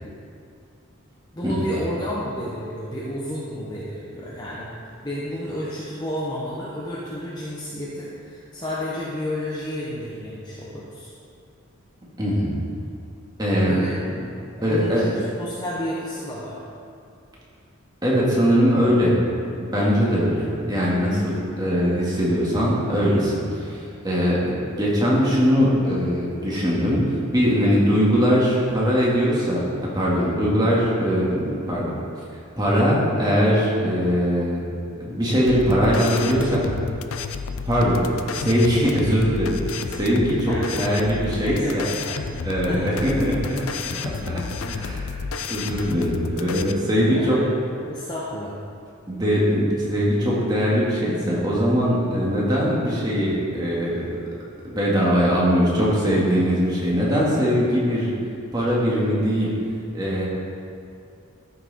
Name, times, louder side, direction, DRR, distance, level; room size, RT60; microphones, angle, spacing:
voice 1, 1.3-4.7 5.0-11.1 13.6-14.3 14.6-16.6 40.5-40.9 41.4-42.3 42.7-42.9 44.6-44.8 46.9-47.5 47.9-48.5, equal, 20° left, -7 dB, 1.0 m, -31 dB
voice 2, 12.2-12.5 13.4-13.8 14.6-15.0 18.0-19.1 19.6-32.0 32.6-34.6 35.0-36.6 37.7-38.0 38.3-41.9 42.4-44.4 44.7-45.0 45.5-47.4 49.1-54.0 54.6-58.1 58.5-59.5 59.9-60.3, equal, 20° right, -6 dB, 1.9 m, -21 dB
sound 1, 35.5-46.7, left 4 dB, 80° left, 0.5 m, -31 dB
14.0 x 5.8 x 4.2 m, 2.5 s
head